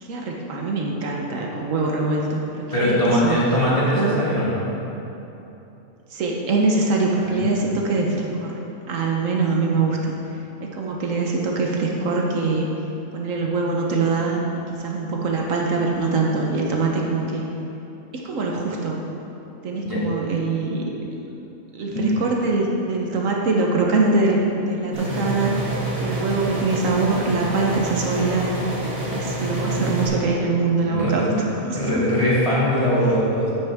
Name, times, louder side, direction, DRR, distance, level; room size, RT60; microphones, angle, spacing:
voice 1, 0.0-3.4 3.8-4.2 6.1-8.6 8.9-10.1 10.6-12.7 13.1-14.4 14.8-17.4 18.1-19.0 19.6-20.8 21.1-21.2 21.7-25.5 26.0-31.3 31.6-31.8, right 3 dB, 70° right, -1 dB, 1.2 m, -23 dB
voice 2, 2.7-4.6 7.3-7.5 19.8-20.0 21.9-22.0 30.9-31.4 31.7-33.5, equal, 25° left, -9 dB, 2.2 m, -21 dB
sound 1, 24.9-30.1, right 1 dB, 55° right, 2.4 m, -28 dB
9.1 x 8.5 x 3.5 m, 3.0 s
omnidirectional pair, 1.4 m